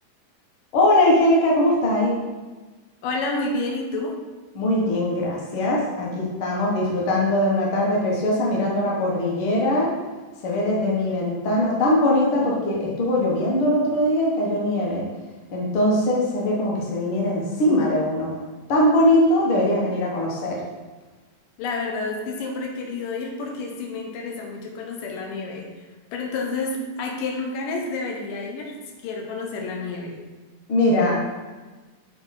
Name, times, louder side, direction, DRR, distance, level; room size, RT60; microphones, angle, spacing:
voice 1, 0.7-2.1 4.5-9.9 10.4-15.0 15.5-18.3 18.7-20.6 30.7-31.2, left 1 dB, 55° left, -3 dB, 1.6 m, -21 dB
voice 2, 3.0-4.1 21.6-25.7 26.1-28.7 29.0-30.2, left 3 dB, 85° left, 1 dB, 2.5 m, -29 dB
6.2 x 3.9 x 4.1 m, 1.3 s
omnidirectional pair, 3.8 m